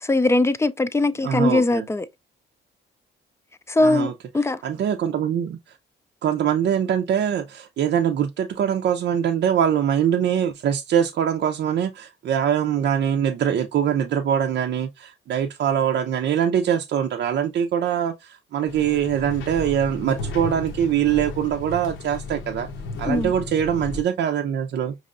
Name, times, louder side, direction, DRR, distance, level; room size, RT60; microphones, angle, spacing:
voice 1, 0.0-2.1 3.7-4.6 23.1-23.3, left 2 dB, 15° left, 0.4 m, -21 dB
voice 2, 1.2-1.9 3.8-4.1 4.6-5.8 6.2-22.7 23.0-24.9, right 9 dB, 60° right, 0.6 m, -23 dB
sound 1, 18.7-24.0, left 3 dB, 80° left, 0.8 m, -34 dB
5.4 x 3.0 x 2.5 m
cardioid pair, 90°, 20 cm